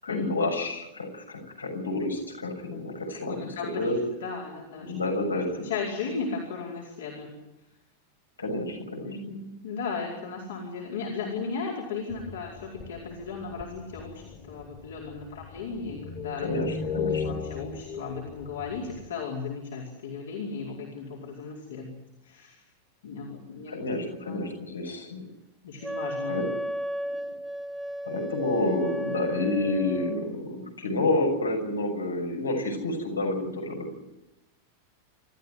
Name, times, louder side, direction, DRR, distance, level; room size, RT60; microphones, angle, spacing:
voice 1, 0.0-3.5 3.8-4.0 4.8-5.6 8.4-9.3 16.4-17.2 23.7-25.2 26.3-26.4 27.0-27.2 28.0-33.9, left 2 dB, 80° left, 1 dB, 6.7 m, -29 dB
voice 2, 3.3-4.9 5.3-7.4 9.0-16.6 16.8-21.9 22.2-22.6 23.0-23.7 24.2-24.4 25.6-26.4, left 5 dB, 60° left, -2 dB, 4.8 m, -36 dB
sound 1, 12.1-19.1, left 5 dB, 30° left, 3.5 m, -37 dB
Wind instrument woodwind instrument, 25.8-30.3, equal, 5° right, 1.2 m, -34 dB
27.5 x 14.0 x 9.6 m, 0.96 s
figure-of-eight pair, 90°, 0 cm